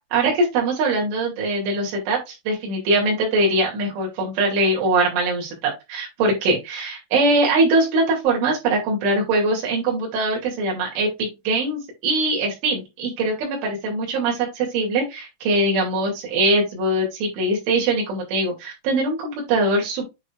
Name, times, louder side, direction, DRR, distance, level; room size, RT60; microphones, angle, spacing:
voice 1, 0.1-20.0, right 2 dB, 85° right, -1 dB, 4.9 m, -22 dB
9.4 x 5.1 x 2.4 m, 0.23 s
omnidirectional pair, 5.3 m